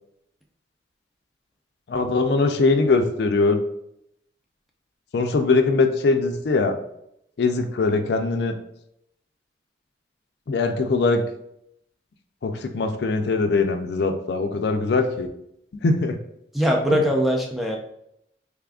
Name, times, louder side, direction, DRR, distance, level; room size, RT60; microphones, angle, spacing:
voice 1, 1.9-3.6 5.1-6.8 7.4-8.5 10.5-11.2 12.4-15.3 15.8-16.2 16.9-17.0, left 3 dB, 70° left, 7 dB, 0.4 m, -21 dB
voice 2, 16.5-17.8, equal, ahead, 0 dB, 0.4 m, -21 dB
3.6 x 3.4 x 2.4 m, 0.76 s
head